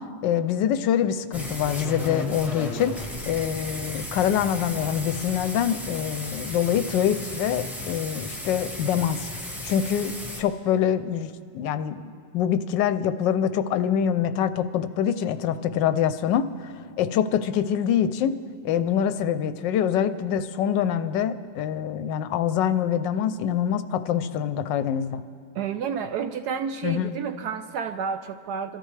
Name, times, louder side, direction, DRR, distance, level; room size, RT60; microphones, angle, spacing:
voice 1, 0.2-9.3 9.6-12.0 12.3-18.4 18.6-25.2 26.8-27.1, left 9 dB, 75° left, 12 dB, 1.2 m, -25 dB
sound 1, 1.3-10.4, left 1 dB, ahead, 1.1 m, -35 dB
voice 2, 25.5-28.8, right 6 dB, 70° right, 8 dB, 1.0 m, -30 dB
26.5 x 14.0 x 3.2 m, 2.4 s
omnidirectional pair, 2.1 m